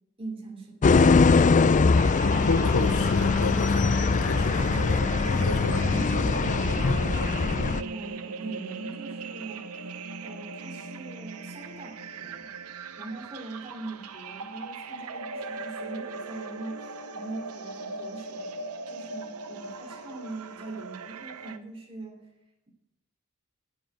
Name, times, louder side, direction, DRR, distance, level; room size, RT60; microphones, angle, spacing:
voice 1, 0.2-1.3 5.2-6.0 6.4-6.8 7.9-9.7 10.2-12.5 13.0-22.2, right 3 dB, 25° right, -1 dB, 2.8 m, -41 dB
sound 1, 0.8-7.8, left 4 dB, 35° left, 0.4 m, -22 dB
sound 2, 2.0-21.6, right 4 dB, 80° right, 0.9 m, -38 dB
voice 2, 2.5-5.1 5.4-5.8 6.8-7.0, left 3 dB, 65° left, 7 dB, 0.8 m, -30 dB
9.6 x 7.9 x 9.3 m, 0.91 s
head